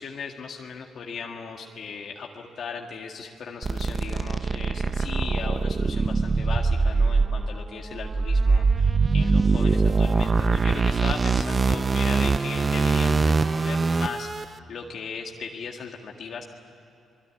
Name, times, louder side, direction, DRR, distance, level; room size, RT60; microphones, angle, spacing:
voice 1, 0.0-16.4, left 5 dB, 60° left, 1 dB, 1.9 m, -37 dB
sound 1, 3.6-14.4, right 4 dB, 30° right, 0.6 m, -23 dB
25.5 x 21.5 x 9.9 m, 2.9 s
cardioid pair, 90°, 0 cm